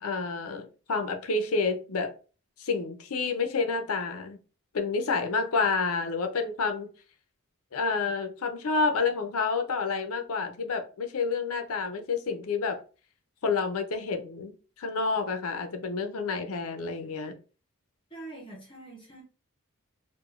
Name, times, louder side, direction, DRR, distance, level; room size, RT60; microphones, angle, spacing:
voice 1, 0.0-2.1 2.6-4.4 4.7-6.9 7.7-12.8 13.4-17.4, left 4 dB, 75° left, 0.6 m, -29 dB
voice 2, 18.1-19.2, right 2 dB, 25° left, 0.7 m, -44 dB
4.7 x 2.2 x 2.4 m
head